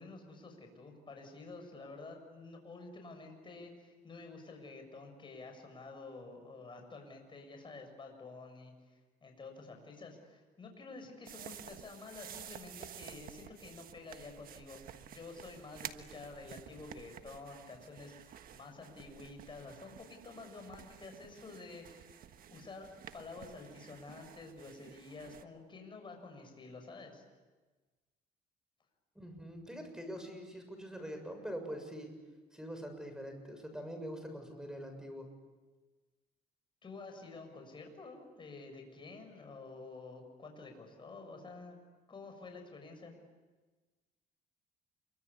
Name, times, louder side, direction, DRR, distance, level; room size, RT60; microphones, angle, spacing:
voice 1, 0.0-14.8 15.0-22.9 23.1-27.2 36.8-41.8 42.1-43.2, left 3 dB, 30° left, 4 dB, 7.0 m, -50 dB
sound 1, 11.3-25.4, right 9 dB, 60° right, 1.5 m, -52 dB
voice 2, 29.2-32.1 32.5-35.3, equal, 5° right, 6 dB, 7.0 m, -44 dB
27.5 x 24.5 x 8.5 m, 1.3 s
cardioid pair, 110°, 17 cm